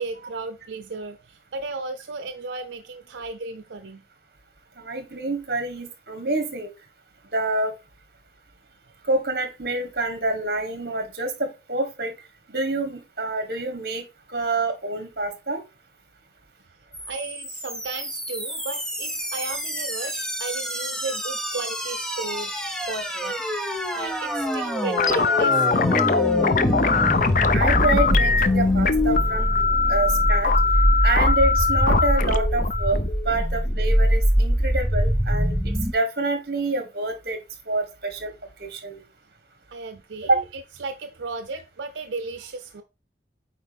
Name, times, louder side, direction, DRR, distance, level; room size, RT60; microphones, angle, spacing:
voice 1, 0.0-4.0 17.1-25.8 39.7-42.8, right 3 dB, 85° right, 0.6 m, -35 dB
voice 2, 4.8-6.7 7.3-7.7 9.0-12.1 12.5-15.6 27.5-29.5 29.9-30.5 31.0-37.4 37.7-38.3 38.6-39.0 40.3-40.4, right 2 dB, 55° right, 1.5 m, -27 dB
sound 1, 16.9-35.9, equal, 5° left, 0.8 m, -24 dB
sound 2, 25.0-33.9, left 5 dB, 45° left, 0.5 m, -22 dB
8.5 x 4.3 x 3.4 m
head